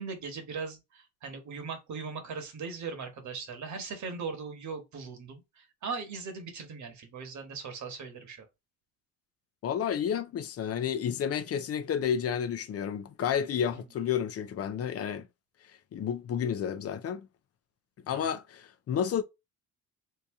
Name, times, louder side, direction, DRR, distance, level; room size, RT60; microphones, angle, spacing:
voice 1, 0.0-8.5 13.7-13.8 18.1-18.3, right 5 dB, 55° right, 1.2 m, -39 dB
voice 2, 9.6-15.3 15.9-17.3 18.1-19.2, left 8 dB, 45° left, 0.5 m, -31 dB
2.8 x 2.7 x 3.5 m
cardioid pair, 90°, 34 cm